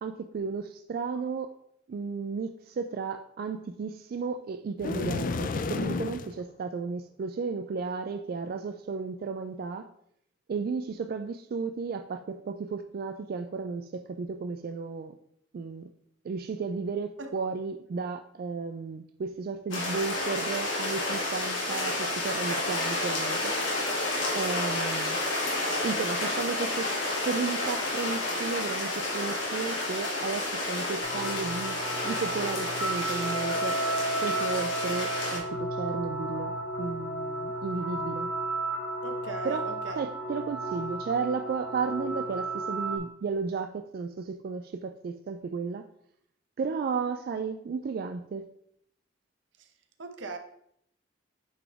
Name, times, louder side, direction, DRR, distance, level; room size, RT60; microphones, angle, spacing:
voice 1, 0.0-1.5 1.9-9.9 10.5-15.2 15.5-15.9 16.2-23.5 24.3-25.2 25.8-26.9 27.2-31.8 32.0-33.8 34.2-38.3 39.4-39.7 40.0-45.9 46.6-48.5, right 5 dB, 50° right, 0.3 m, -34 dB
sound 1, 4.8-6.3, left 4 dB, 45° left, 0.4 m, -31 dB
sound 2, 19.7-35.4, left 2 dB, 90° left, 2.2 m, -30 dB
sound 3, 31.0-43.0, right 2 dB, 65° left, 1.7 m, -33 dB
voice 2, 39.0-40.0 49.6-49.7 50.0-50.4, right 3 dB, 75° right, 0.8 m, -39 dB
8.7 x 4.1 x 3.4 m
head